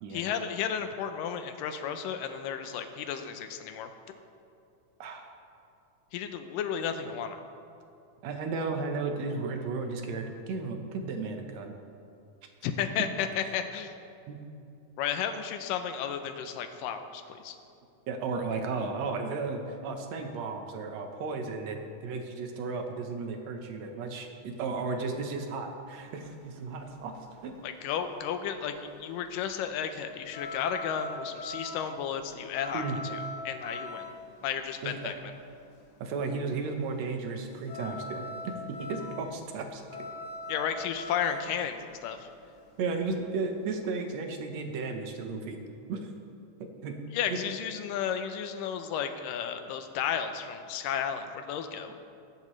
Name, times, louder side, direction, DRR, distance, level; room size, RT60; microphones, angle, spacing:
voice 1, 0.1-3.9 6.1-7.4 12.6-13.9 15.0-17.6 27.6-33.2 33.5-34.0 34.4-35.1 40.5-42.3 47.1-51.9, left 8 dB, 85° left, 8 dB, 2.4 m, -33 dB
voice 2, 5.0-5.3 8.2-11.7 14.3-14.4 18.1-27.1 27.4-27.5 32.7-33.0 34.8-35.2 36.0-39.8 42.8-45.6 45.9-46.1 46.8-47.0 47.3-47.4, right 4 dB, 65° right, 4 dB, 2.0 m, -34 dB
sound 1, 26.0-44.0, left 2 dB, 60° left, 1.7 m, -42 dB
19.5 x 10.5 x 3.2 m, 2.5 s
omnidirectional pair, 3.8 m